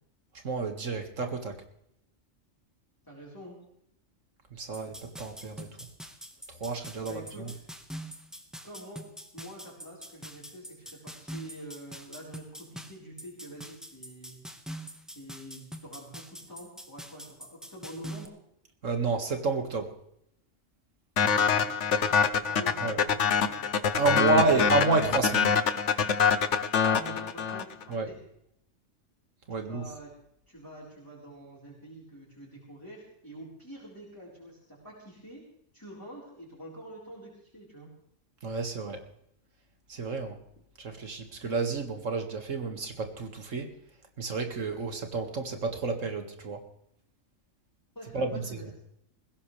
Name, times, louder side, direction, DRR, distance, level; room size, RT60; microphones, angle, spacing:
voice 1, 0.4-1.6 4.5-5.7 6.5-7.5 18.8-19.9 22.8-23.0 24.0-25.6 27.9-28.1 29.5-29.8 38.4-39.0 39.9-40.4 40.8-43.7 44.2-46.6 48.1-48.6, right 4 dB, 75° right, 5 dB, 2.3 m, -30 dB
voice 2, 3.0-3.6 7.0-7.6 8.6-9.1 9.3-14.4 15.1-18.3 21.2-23.7 24.0-25.0 26.9-28.2 29.5-30.1 30.5-35.4 35.7-37.9 47.9-48.7, right 1 dB, 15° left, -6 dB, 4.4 m, -46 dB
sound 1, 4.7-18.3, equal, ahead, 1.3 m, -44 dB
sound 2, 21.2-27.8, left 6 dB, 65° left, 1.2 m, -25 dB
20.0 x 16.5 x 3.4 m, 0.73 s
omnidirectional pair, 1.3 m